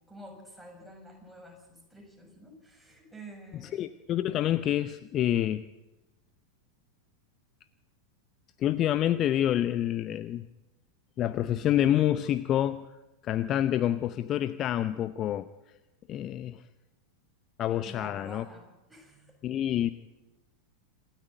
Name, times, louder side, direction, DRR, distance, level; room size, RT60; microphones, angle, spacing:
voice 1, 0.1-3.9 17.9-19.3, right 1 dB, ahead, 0 dB, 7.2 m, -49 dB
voice 2, 3.6-5.6 8.6-10.5 11.2-12.9 13.2-15.5 16.1-16.6 17.6-18.4 19.4-19.9, left 11 dB, 30° left, 14 dB, 0.7 m, -27 dB
26.5 x 13.5 x 9.2 m, 1.0 s
figure-of-eight pair, 90°, 0 cm